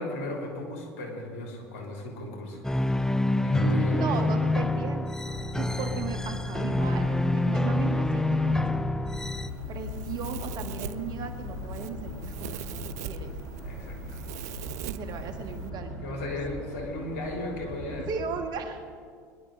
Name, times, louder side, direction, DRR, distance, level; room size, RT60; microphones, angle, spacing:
voice 1, 0.0-2.6 3.4-4.2 13.6-14.2 16.0-18.1, left 1 dB, 70° left, 0 dB, 3.5 m, -34 dB
sound 1, 2.6-9.5, left 2 dB, 5° left, 0.5 m, -26 dB
voice 2, 3.7-8.6 9.7-13.3 14.8-16.2 18.1-18.8, right 6 dB, 55° right, 6 dB, 1.6 m, -36 dB
sound 2, 5.3-18.4, left 2 dB, 50° left, 3.8 m, -39 dB
Domestic sounds home sounds, 9.5-15.7, right 11 dB, 80° right, 0.5 m, -42 dB
22.0 x 11.0 x 3.9 m, 2.1 s
hypercardioid pair, 75°, 9 cm